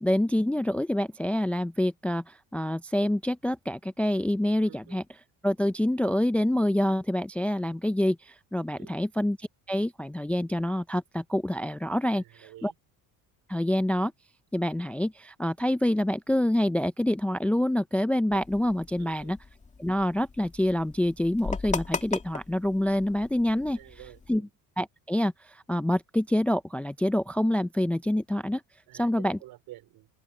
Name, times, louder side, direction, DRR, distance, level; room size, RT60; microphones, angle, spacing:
voice 1, 0.0-5.0 5.4-12.7 13.5-14.1 14.5-19.4 19.8-23.8 24.3-24.4 24.8-28.6 29.0-29.4, left 1 dB, 5° left, 0.4 m, -26 dB
voice 2, 4.6-5.0 8.8-9.0 12.1-12.7 19.0-19.4 23.7-24.5 28.9-30.1, right 16 dB, 75° right, 4.5 m, -49 dB
sound 1, 18.3-24.4, left 4 dB, 20° left, 2.1 m, -38 dB
open air
cardioid pair, 130°, 36 cm